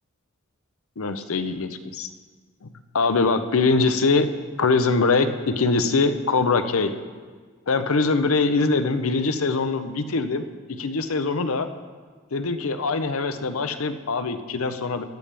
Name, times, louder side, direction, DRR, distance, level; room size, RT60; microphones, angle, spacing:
voice 1, 1.0-2.1 2.6-4.3 4.6-6.9 7.7-11.7 12.3-15.0, left 3 dB, 75° left, 9 dB, 0.7 m, -23 dB
16.0 x 11.5 x 3.4 m, 1.5 s
head